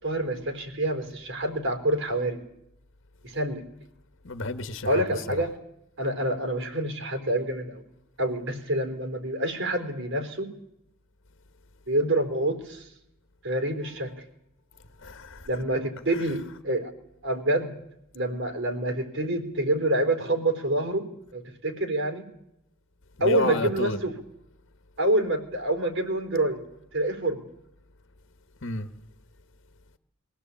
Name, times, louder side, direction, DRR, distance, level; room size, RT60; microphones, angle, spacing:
voice 1, 0.0-2.4 3.2-3.6 4.8-5.5 6.0-7.8 8.2-10.5 11.9-12.9 13.4-14.1 15.5-16.9 17.2-17.7 18.1-21.1 21.3-22.2 23.2-24.1 25.0-26.6 26.9-27.4, right 1 dB, 65° right, 4.1 m, -27 dB
voice 2, 4.2-5.0 15.0-15.5 23.2-24.0 28.6-28.9, left 2 dB, 65° left, 1.3 m, -30 dB
23.0 x 17.0 x 8.5 m
head